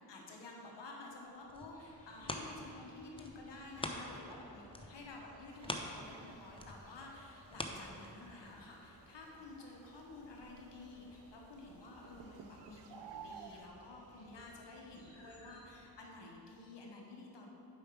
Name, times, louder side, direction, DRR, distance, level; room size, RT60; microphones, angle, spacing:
voice 1, 0.1-17.5, left 2 dB, 80° left, 0 dB, 1.2 m, -52 dB
sound 1, 1.2-4.4 4.7-8.5 9.0-9.1, left 1 dB, 15° left, 0.7 m, -45 dB
sound 2, 1.7-15.8, equal, 35° left, 1.7 m, -62 dB
sound 3, 5.5-13.7, right 7 dB, 75° right, 0.5 m, -57 dB
7.0 x 5.2 x 4.7 m, 2.9 s
cardioid pair, 40°, 42 cm